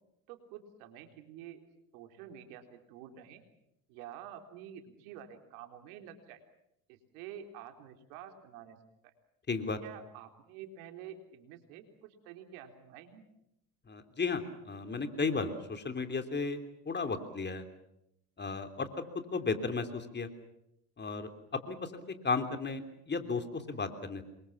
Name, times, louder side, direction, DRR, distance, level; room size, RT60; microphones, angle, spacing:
voice 1, 0.3-1.6 1.9-3.4 3.9-6.4 6.9-8.8 9.0-9.1 9.8-13.2, right 9 dB, 70° right, 6 dB, 3.8 m, -49 dB
voice 2, 9.5-9.8 13.9-16.6 16.8-17.6 18.4-18.9 19.3-20.3 21.0-22.8 23.1-24.2, left 4 dB, 25° left, 8 dB, 3.3 m, -34 dB
27.5 x 23.5 x 7.2 m, 0.81 s
hypercardioid pair, 80°, 44 cm